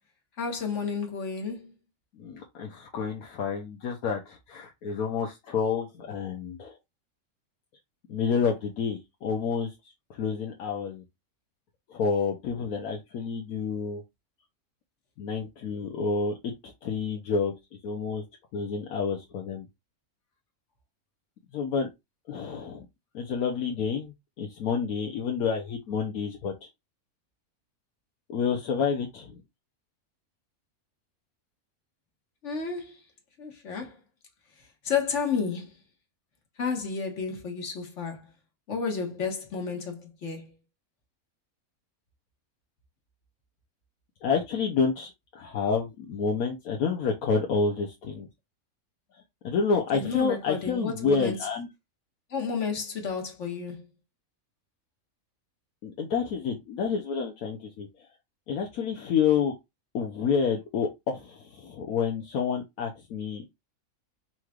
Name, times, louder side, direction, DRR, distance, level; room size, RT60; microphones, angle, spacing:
voice 1, 0.4-1.7 32.4-33.0 33.4-34.0 34.8-35.8 36.6-38.3 38.7-40.5 49.9-51.4 52.3-53.9, left 5 dB, 55° left, 1.6 m, -31 dB
voice 2, 2.2-6.7 8.1-9.7 10.2-11.0 11.9-14.0 15.2-16.5 16.8-17.5 17.8-18.2 18.5-19.7 21.5-21.9 22.3-22.9 23.1-26.7 28.3-29.4 44.2-45.1 45.3-48.3 49.4-51.7 55.8-57.9 58.5-59.6 59.9-63.5, left 5 dB, 75° left, 1.2 m, -29 dB
5.7 x 3.1 x 2.4 m
omnidirectional pair, 1.5 m